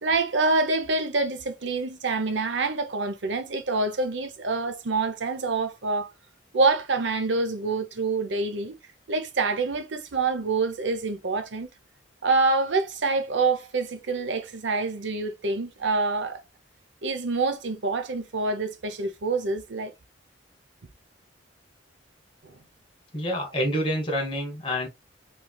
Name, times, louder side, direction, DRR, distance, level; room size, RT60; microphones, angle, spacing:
voice 1, 0.0-6.1 6.5-8.8 9.1-11.7 12.2-16.4 17.0-19.9 22.4-22.6, right 3 dB, 75° right, 0.7 m, -26 dB
voice 2, 23.1-24.9, equal, 25° left, 1.3 m, -27 dB
3.4 x 3.2 x 2.3 m
head